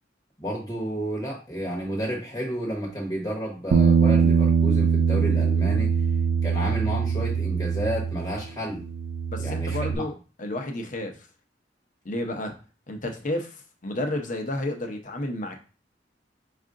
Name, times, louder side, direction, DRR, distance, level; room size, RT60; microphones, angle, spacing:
voice 1, 0.4-5.9 6.4-8.8 9.4-10.1, equal, 20° left, -2 dB, 1.0 m, -31 dB
Bass guitar, 3.7-8.5 8.8-10.0, right 6 dB, 60° right, 0.3 m, -22 dB
voice 2, 9.3-10.1 10.4-11.3 12.0-12.6 12.9-15.6, left 1 dB, 45° left, 4 dB, 0.7 m, -31 dB
4.8 x 2.4 x 3.7 m, 0.34 s
head